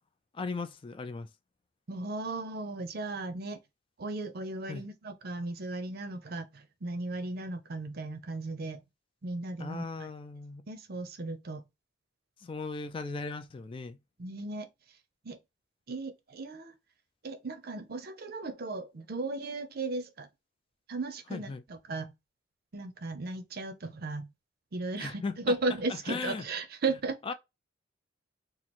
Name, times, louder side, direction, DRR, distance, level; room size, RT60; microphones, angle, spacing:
voice 1, 0.3-1.3 4.7-4.9 9.6-10.6 12.4-14.0 21.3-21.6 25.0-25.5 25.9-26.5 27.3-27.4, left 4 dB, 25° left, 0.3 m, -37 dB
voice 2, 1.9-3.6 4.0-8.8 9.2-10.1 10.7-11.6 14.2-14.7 15.2-15.4 15.9-16.7 17.2-20.3 20.9-22.1 22.7-24.3 24.7-27.2, right 3 dB, 55° right, 0.6 m, -36 dB
3.0 x 2.4 x 4.1 m
head